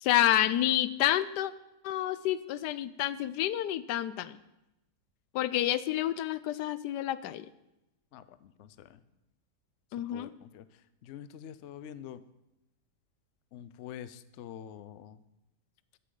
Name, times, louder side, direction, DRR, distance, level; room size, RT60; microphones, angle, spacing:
voice 1, 0.0-1.5 1.8-4.4 5.3-7.5 9.9-10.3, left 13 dB, 85° left, 15 dB, 1.2 m, -29 dB
voice 2, 8.1-9.0 10.1-12.2 13.5-15.2, left 9 dB, 65° left, 14 dB, 0.7 m, -46 dB
13.5 x 9.8 x 3.9 m, 0.91 s
omnidirectional pair, 1.7 m